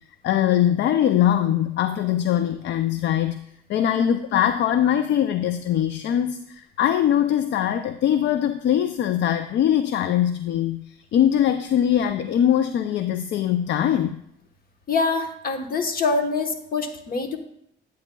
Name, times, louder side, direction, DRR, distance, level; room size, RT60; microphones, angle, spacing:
voice 1, 0.2-3.4 3.7-10.9 11.1-14.2, left 10 dB, 65° left, 10 dB, 0.4 m, -22 dB
voice 2, 14.9-17.4, left 4 dB, 50° left, 5 dB, 1.1 m, -25 dB
9.0 x 8.4 x 2.2 m, 0.73 s
cardioid pair, 90°, 20 cm